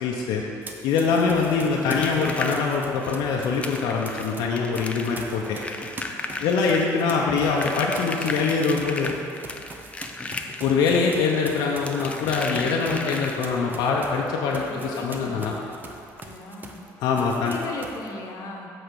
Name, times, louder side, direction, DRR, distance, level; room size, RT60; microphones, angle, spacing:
voice 1, 0.0-0.4 0.8-5.6 6.4-9.1 10.6-15.5 17.0-17.6, left 5 dB, 85° left, -1 dB, 0.7 m, -23 dB
Run, 0.6-4.4 4.7-16.9 17.1-18.1, right 3 dB, 25° right, 0.7 m, -42 dB
sound 1, 1.2-13.7 15.2-15.3 15.6-15.7 16.1-16.2, left 3 dB, 15° left, 0.5 m, -35 dB
voice 2, 6.3-6.7 14.6-15.6 16.2-16.8 17.2-18.7, left 3 dB, 55° left, 1 dB, 1.2 m, -38 dB
8.0 x 4.3 x 6.7 m, 2.8 s
cardioid pair, 115°, 7 cm